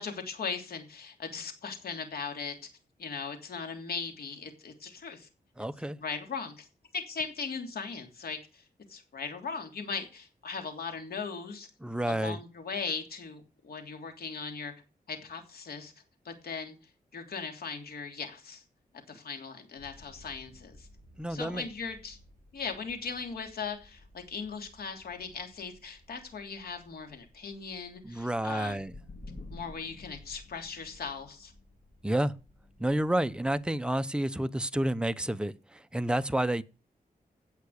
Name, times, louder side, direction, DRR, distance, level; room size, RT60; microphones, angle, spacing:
voice 1, 0.0-2.5 3.0-5.3 6.0-6.7 6.9-8.6 8.9-11.7 12.1-14.7 15.1-15.9 16.2-16.8 17.1-18.6 19.1-20.9 21.3-22.2 22.5-28.8 29.5-31.5, left 5 dB, 80° left, 3.2 m, -38 dB
voice 2, 5.6-6.0 11.8-12.4 21.2-21.7 28.0-29.0 32.0-32.3 32.8-36.6, right 1 dB, 5° right, 0.7 m, -30 dB
sound 1, 19.8-33.7, left 2 dB, 60° left, 4.0 m, -53 dB
16.5 x 5.9 x 6.6 m
wide cardioid pair, 135°, 15 cm